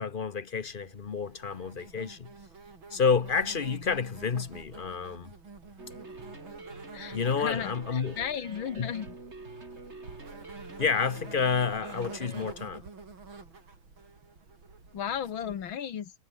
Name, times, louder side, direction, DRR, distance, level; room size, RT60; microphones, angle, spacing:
voice 1, 0.0-2.3 2.9-5.3 7.1-8.2 8.8-8.9 10.8-12.8, left 5 dB, 40° left, 0.7 m, -29 dB
Insect, 0.6-15.8, right 4 dB, 85° right, 5.0 m, -48 dB
sound 1, 5.8-12.5, right 2 dB, 35° right, 3.9 m, -46 dB
voice 2, 6.9-9.2 14.9-16.1, left 8 dB, 80° left, 2.4 m, -35 dB
omnidirectional pair, 2.1 m